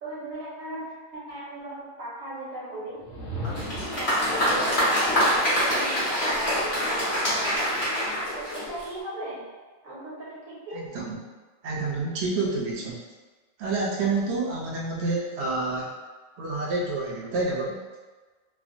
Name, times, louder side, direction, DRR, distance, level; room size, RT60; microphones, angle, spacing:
voice 1, 0.0-3.0 3.9-7.9 8.4-9.4 9.8-10.9, right 1 dB, 80° right, -6 dB, 1.3 m, -37 dB
sound 1, 3.0-4.2, equal, 80° left, 1.3 m, -35 dB
Applause, 3.4-9.0, equal, 55° left, 1.3 m, -25 dB
voice 2, 10.7-11.2 11.6-13.0 13.6-15.9 16.4-17.8, right 3 dB, 65° right, -3 dB, 0.7 m, -28 dB
3.3 x 2.1 x 2.5 m, 1.3 s
omnidirectional pair, 1.4 m